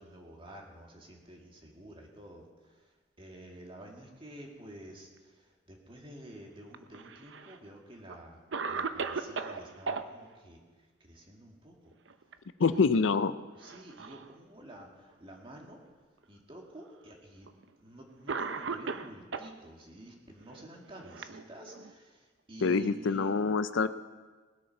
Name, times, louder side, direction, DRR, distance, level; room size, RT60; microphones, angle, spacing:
voice 1, 0.0-2.5 3.2-8.4 8.7-10.6 11.1-11.9 12.6-13.2 13.6-15.8 16.3-17.5 17.8-23.5, right 1 dB, 30° right, 1 dB, 2.2 m, -50 dB
Cough, 6.7-7.6 8.1-8.2 8.5-10.0 11.9-12.3 12.7-12.8 13.6-14.3 15.1-15.2 16.2-16.3 17.5-17.6 18.3-19.5 20.5-21.9, right 5 dB, 70° right, 0.7 m, -37 dB
voice 2, 12.6-13.3 22.6-23.9, left 4 dB, 85° left, 13 dB, 0.5 m, -26 dB
19.5 x 8.5 x 5.9 m, 1.4 s
head